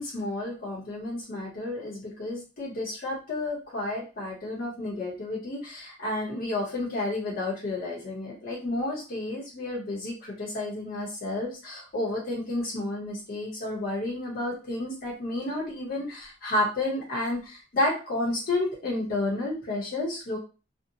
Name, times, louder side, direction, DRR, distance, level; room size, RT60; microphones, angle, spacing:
voice 1, 0.0-20.4, left 2 dB, 50° left, -4 dB, 0.7 m, -31 dB
2.6 x 2.0 x 2.7 m, 0.33 s
head